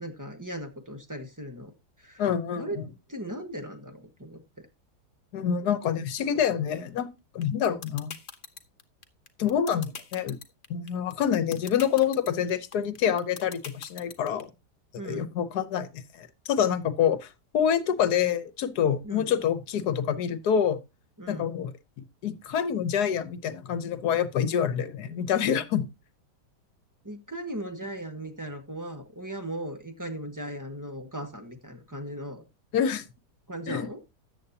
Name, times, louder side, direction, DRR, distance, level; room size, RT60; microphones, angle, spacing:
voice 1, 0.0-1.7 2.0-2.8 3.1-4.4 14.9-15.3 19.0-19.3 21.2-21.5 27.0-32.4 33.5-34.0, right 1 dB, 15° right, 1.1 m, -38 dB
voice 2, 2.2-2.6 5.3-7.1 7.3-8.2 9.4-10.4 10.7-14.5 15.0-15.9 16.1-20.8 21.3-21.7 22.2-25.9 32.7-33.0 33.7-33.9, left 8 dB, 70° left, 1.4 m, -26 dB
sound 1, 7.4-14.4, left 6 dB, 40° left, 1.0 m, -40 dB
13.5 x 8.5 x 2.8 m
omnidirectional pair, 1.8 m